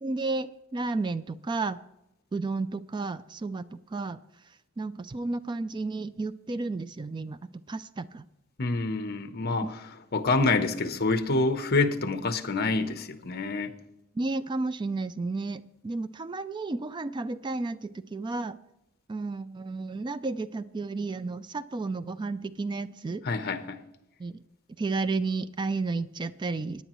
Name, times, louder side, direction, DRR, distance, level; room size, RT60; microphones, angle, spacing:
voice 1, 0.0-1.8 2.3-4.2 4.8-7.4 7.7-8.2 14.1-18.6 19.1-23.2 24.2-24.4 24.8-26.8, right 3 dB, 20° right, 0.3 m, -32 dB
voice 2, 8.6-13.7 23.2-23.8, left 3 dB, 50° left, 0.9 m, -27 dB
18.0 x 9.9 x 3.1 m
head